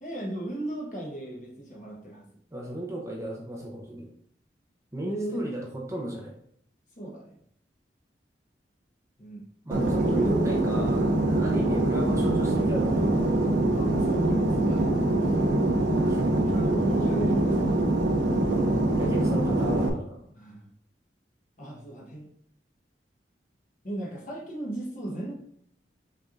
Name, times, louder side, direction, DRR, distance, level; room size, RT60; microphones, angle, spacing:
voice 1, 0.0-2.3 5.0-5.5 7.0-7.4 9.2-9.4 9.9-10.3 13.6-14.9 15.2-15.3 16.4-17.8 20.2-20.7 21.6-22.3 23.8-25.3, right 1 dB, 45° left, -2 dB, 1.3 m, -36 dB
voice 2, 2.5-4.1 4.9-6.3 9.7-13.2 16.0-16.4 18.9-20.2, right 1 dB, 15° right, -2 dB, 0.7 m, -34 dB
Fixed-wing aircraft airplane, 9.7-19.9, right 1 dB, 80° right, 0.7 m, -24 dB
5.6 x 3.5 x 2.6 m, 0.67 s
head